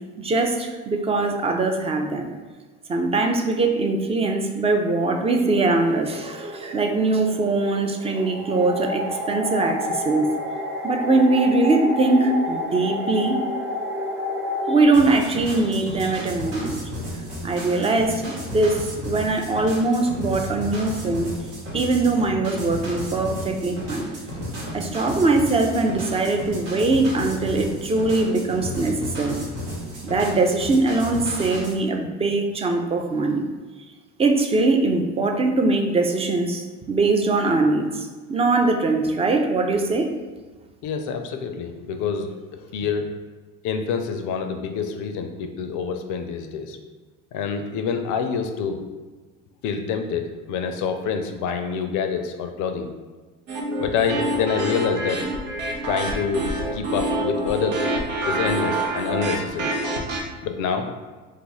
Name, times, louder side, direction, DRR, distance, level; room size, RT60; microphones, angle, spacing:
voice 1, 0.2-2.3 2.9-10.3 10.8-13.4 14.7-16.8 17.4-21.3 21.7-24.1 24.7-29.4 30.0-33.4 34.2-40.1, right 3 dB, 15° right, 4 dB, 0.4 m, -22 dB
sound 1, 5.0-14.8, left 1 dB, 40° right, 0.7 m, -30 dB
sound 2, 14.9-31.8, equal, 75° right, 1.2 m, -33 dB
voice 2, 40.8-43.1 43.6-46.8 47.3-48.8 49.6-52.9 53.8-55.2 55.8-57.8 58.2-59.7 60.4-60.9, left 6 dB, 55° left, 6 dB, 0.4 m, -26 dB
sound 3, 53.5-60.2, right 1 dB, 90° right, 0.6 m, -27 dB
2.6 x 2.4 x 3.9 m, 1.3 s
hypercardioid pair, 70°, 38 cm